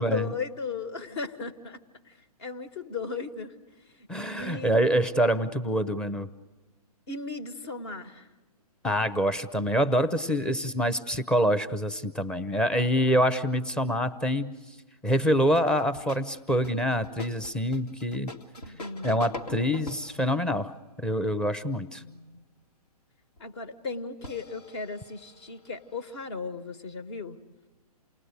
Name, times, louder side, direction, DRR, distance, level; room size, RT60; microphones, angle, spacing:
voice 1, 0.0-1.8 2.0-2.1 2.4-3.5 3.9-4.1 4.4-4.7 7.1-8.3 18.7-19.3 22.0-22.4 23.4-27.4, left 4 dB, 45° left, 12 dB, 1.6 m, -36 dB
voice 2, 4.1-6.3 8.8-14.5 15.0-18.3 19.0-20.7 21.0-22.0, equal, 5° left, 13 dB, 0.7 m, -26 dB
sound 1, 15.5-20.3 23.4-23.5 24.2-26.3, left 1 dB, 75° left, 2.1 m, -44 dB
28.5 x 19.5 x 8.1 m, 1.2 s
figure-of-eight pair, 125°, 20 cm